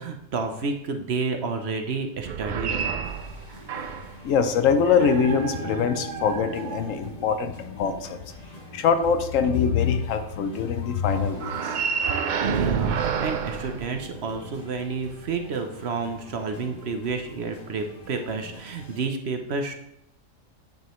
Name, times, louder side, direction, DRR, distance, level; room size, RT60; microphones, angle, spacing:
voice 1, 0.0-2.8 8.4-8.5 12.6-19.7, right 4 dB, 60° right, 5 dB, 0.9 m, -30 dB
sound 1, 2.2-4.2 4.8-7.2 11.3-14.5, right 6 dB, 85° right, 0.4 m, -29 dB
sound 2, 3.0-19.0, right 1 dB, 30° left, 1.6 m, -47 dB
voice 2, 4.2-8.2 8.7-11.8, left 6 dB, 80° left, 9 dB, 1.0 m, -23 dB
Bowed string instrument, 4.9-8.1, right 3 dB, 35° right, 0.7 m, -39 dB
9.2 x 4.9 x 3.1 m, 0.79 s
omnidirectional pair, 1.4 m